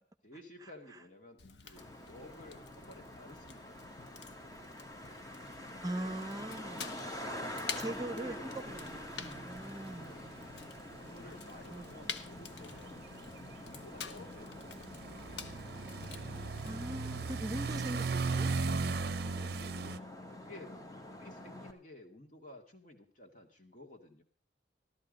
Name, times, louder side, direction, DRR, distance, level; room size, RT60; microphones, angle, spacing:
voice 1, 0.2-4.3 5.8-6.1 7.1-8.7 9.7-10.4 11.0-12.9 13.4-15.7 19.2-20.0 20.4-24.2, left 1 dB, 45° left, 4 dB, 2.2 m, -54 dB
Fire, 1.4-16.7, left 6 dB, 75° left, 0.9 m, -49 dB
Traffic noise roadway noise, 1.8-21.7, left 1 dB, 20° left, 1.3 m, -47 dB
voice 2, 5.8-6.9 7.8-10.2 11.7-12.1 16.6-18.5 19.0-19.5, right 1 dB, 20° right, 8 dB, 0.7 m, -41 dB
sound 1, 8.7-20.0, right 4 dB, 60° right, 0.6 m, -38 dB
14.0 x 13.5 x 5.2 m, 0.41 s
head